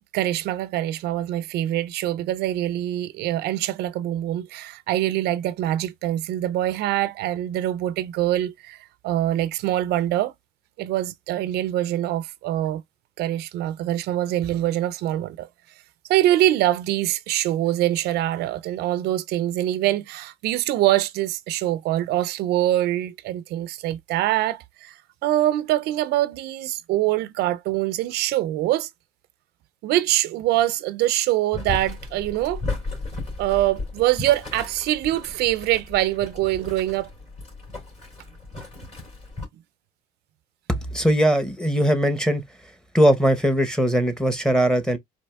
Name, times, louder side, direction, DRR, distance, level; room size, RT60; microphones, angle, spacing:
voice 1, 0.1-10.3 10.8-12.8 13.2-15.5 16.1-28.9 29.8-32.6 33.4-37.1, right 14 dB, 80° right, 0.4 m, -24 dB
Boiling, 31.5-39.5, left 3 dB, 40° left, 3.0 m, -35 dB
voice 2, 40.7-42.4 42.9-45.0, equal, 5° left, 0.8 m, -20 dB
4.4 x 2.7 x 2.2 m
cardioid pair, 110°, 17 cm